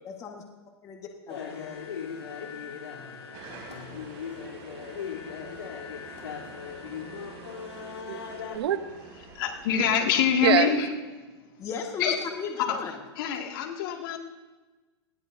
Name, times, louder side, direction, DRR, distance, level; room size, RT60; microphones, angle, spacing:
voice 1, 0.0-0.4 0.8-1.7 11.6-12.9, left 6 dB, 20° left, 2 dB, 1.7 m, -36 dB
sound 1, 1.3-8.6, left 7 dB, 90° left, 3.4 m, -39 dB
sound 2, 3.3-9.9, right 4 dB, 40° right, 3.7 m, -48 dB
voice 2, 4.4-8.8 10.4-10.7, right 11 dB, 70° right, 10 dB, 1.0 m, -32 dB
voice 3, 9.3-10.9 12.0-12.2 12.6-12.8 13.2-14.2, left 8 dB, 55° left, 1 dB, 2.3 m, -25 dB
20.0 x 16.5 x 2.8 m, 1.3 s
hypercardioid pair, 145°, 14 cm